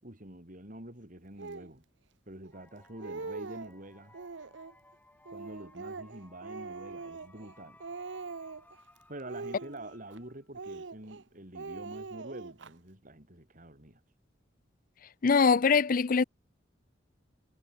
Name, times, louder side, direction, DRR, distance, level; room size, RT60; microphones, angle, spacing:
voice 1, 0.0-1.8 2.3-4.2 5.3-7.9 9.1-14.0, right 1 dB, 45° right, 6.2 m, -47 dB
Speech, 1.4-1.7 2.4-2.5 2.8-3.7 4.1-4.7 5.3-7.5 7.8-8.8 9.2-10.2 10.5-11.2 11.5-12.7, right 4 dB, 80° right, 0.9 m, -42 dB
sound 1, 2.5-10.6, left 2 dB, 10° left, 5.1 m, -60 dB
voice 2, 15.2-16.2, left 5 dB, 50° left, 0.5 m, -23 dB
head